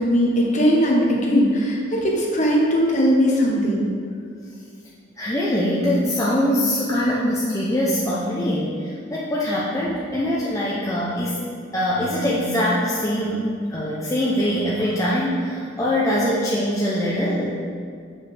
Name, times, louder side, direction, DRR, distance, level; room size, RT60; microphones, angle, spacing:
voice 1, 0.0-3.8, equal, 40° left, -2 dB, 1.0 m, -19 dB
voice 2, 5.2-11.4 11.7-17.6, equal, 15° left, -6 dB, 0.6 m, -23 dB
6.9 x 5.3 x 3.3 m, 2.2 s
head